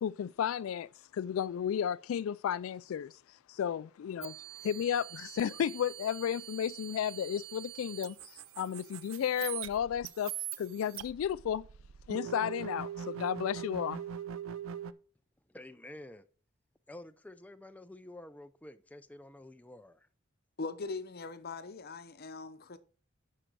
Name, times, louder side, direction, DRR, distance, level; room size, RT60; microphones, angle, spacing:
voice 1, 0.0-4.4 4.6-11.7 12.1-14.0, left 9 dB, 85° left, 0.3 m, -33 dB
sound 1, 4.2-14.9, right 10 dB, 75° right, 0.5 m, -43 dB
voice 2, 15.5-16.3 16.9-20.1, left 1 dB, 5° left, 0.4 m, -50 dB
voice 3, 20.6-22.8, left 3 dB, 50° left, 0.8 m, -41 dB
10.0 x 6.5 x 4.6 m
head